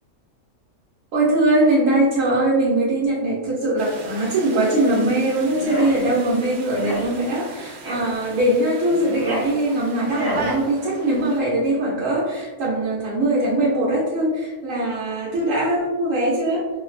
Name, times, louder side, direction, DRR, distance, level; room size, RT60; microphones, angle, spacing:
voice 1, 1.1-16.7, right 1 dB, 85° right, -7 dB, 1.1 m, -21 dB
sound 1, 3.8-11.4, right 3 dB, 65° right, 0.8 m, -38 dB
sound 2, 5.5-6.0 6.7-7.1 7.8-8.1 8.9-9.5 10.1-10.5, equal, 25° right, 0.5 m, -29 dB
2.8 x 2.3 x 3.1 m, 1.1 s
omnidirectional pair, 1.3 m